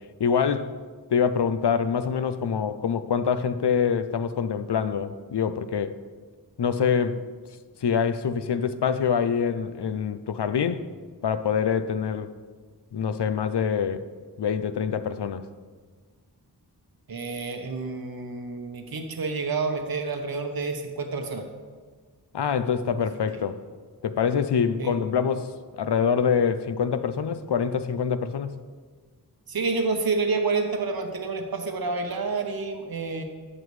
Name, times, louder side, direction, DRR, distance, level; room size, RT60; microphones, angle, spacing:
voice 1, 0.2-0.7 1.1-6.0 6.6-7.2 7.8-10.8 11.2-12.3 12.9-14.1 14.4-15.4 22.3-23.6 24.0-25.5 25.8-28.6, left 7 dB, 80° left, 0.6 m, -25 dB
voice 2, 17.1-21.4 24.8-24.9 29.5-33.2, right 4 dB, 60° right, 1.0 m, -29 dB
12.0 x 8.0 x 3.2 m
wide cardioid pair, 55°, 40 cm